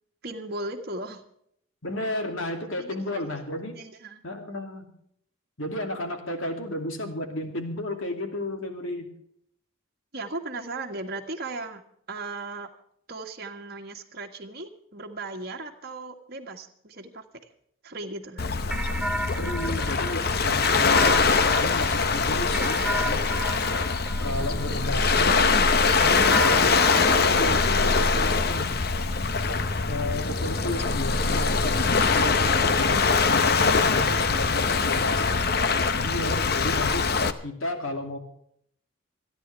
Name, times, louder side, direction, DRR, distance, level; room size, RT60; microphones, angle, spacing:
voice 1, 0.2-1.2 2.8-3.2 3.7-4.2 10.1-11.8 12.1-12.7 13.1-17.2 17.8-18.4, right 2 dB, 45° right, 2 dB, 1.7 m, -37 dB
voice 2, 1.8-3.7 4.2-4.9 5.6-9.1 19.4-23.2 24.2-25.7 26.0-28.8 29.9-35.4 36.0-37.1 37.4-38.2, left 1 dB, 70° left, 4 dB, 2.6 m, -33 dB
Waves surf, 18.4-37.3, left 4 dB, 45° left, 0.8 m, -23 dB
sound 1, 18.7-25.3 26.0-28.8, right 1 dB, 5° right, 0.5 m, -34 dB
28.5 x 10.5 x 3.4 m, 0.70 s
head